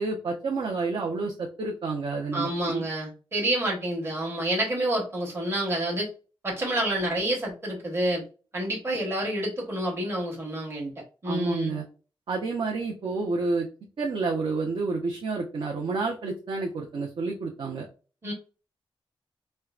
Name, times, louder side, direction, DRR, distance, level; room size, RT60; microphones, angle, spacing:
voice 1, 0.0-2.8 11.2-11.8 12.3-13.7 14.0-17.9, right 3 dB, 60° right, -1 dB, 0.6 m, -29 dB
voice 2, 2.3-6.1 6.4-8.2 8.5-10.9 11.2-11.8 18.2-18.3, right 1 dB, 25° right, -3 dB, 1.0 m, -28 dB
4.4 x 2.1 x 2.4 m, 0.34 s
wide cardioid pair, 160°, 10 cm